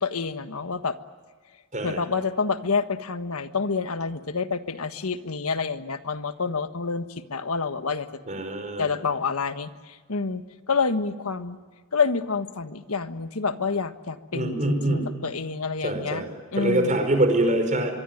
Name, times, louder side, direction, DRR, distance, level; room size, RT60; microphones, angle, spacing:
voice 1, 0.0-1.0 1.8-8.1 8.8-11.6 11.9-16.2 16.5-17.0, left 4 dB, 85° left, 9 dB, 1.4 m, -28 dB
voice 2, 8.3-8.9 14.3-15.0 15.8-16.3 16.6-17.9, right 1 dB, 35° right, 6 dB, 5.0 m, -24 dB
24.5 x 24.0 x 9.3 m, 1.5 s
head